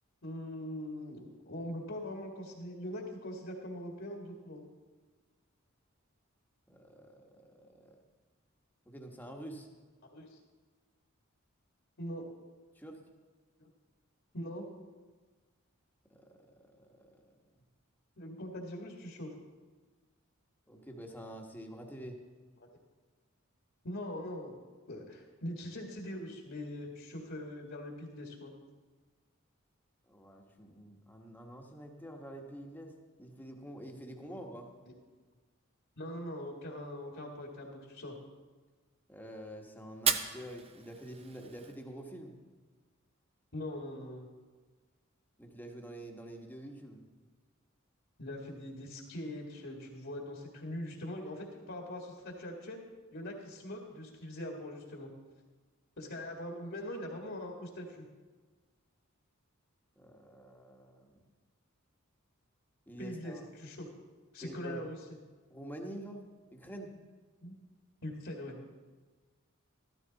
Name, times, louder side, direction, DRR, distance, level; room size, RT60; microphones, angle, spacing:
voice 1, 0.2-4.6 10.1-10.4 12.0-12.2 13.6-13.7 14.3-14.7 18.2-19.3 23.8-24.6 24.9-28.5 34.3-34.4 36.0-38.1 43.5-44.3 48.2-52.8 53.1-55.1 56.0-58.1 63.0-63.9 64.3-65.0 67.4-67.5 68.0-68.6, left 1 dB, 60° left, 1 dB, 1.9 m, -42 dB
voice 2, 6.7-8.0 8.9-9.7 12.7-13.0 16.1-17.2 20.7-22.2 30.1-34.7 39.1-42.3 45.4-47.0 60.0-61.2 62.9-63.4 64.4-64.8 65.5-66.2 66.5-66.9, right 1 dB, 10° left, 2 dB, 1.3 m, -47 dB
Fire, 39.9-41.9, right 7 dB, 30° right, 0.6 m, -35 dB
14.0 x 13.0 x 4.0 m, 1.4 s
head